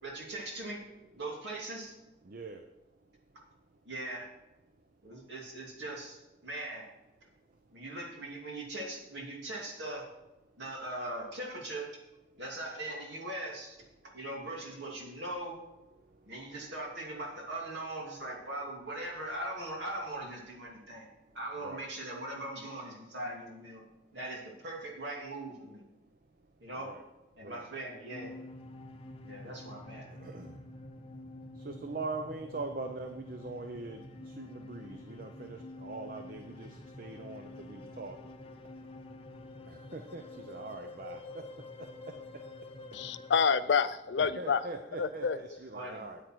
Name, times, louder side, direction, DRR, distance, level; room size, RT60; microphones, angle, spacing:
voice 1, 0.0-0.8 1.2-2.0 3.9-4.3 5.0-6.9 7.7-10.0 10.6-11.9 12.4-13.8 14.1-15.6 16.3-21.1 21.3-23.8 24.1-25.8 26.6-26.9 27.4-28.3 29.2-30.1 45.7-46.0, right 1 dB, 65° right, -1 dB, 2.6 m, -40 dB
voice 2, 2.3-2.6 21.6-21.8 26.8-27.0 27.4-27.7 30.2-30.5 31.6-34.0 34.4-38.2 39.7-41.2 44.2-46.2, right 3 dB, 50° right, 6 dB, 0.6 m, -42 dB
sound 1, 28.1-43.4, left 2 dB, 30° left, 0.7 m, -48 dB
voice 3, 42.9-44.6 45.0-45.4, left 6 dB, 65° left, 14 dB, 0.4 m, -28 dB
9.1 x 8.9 x 4.5 m, 1.0 s
head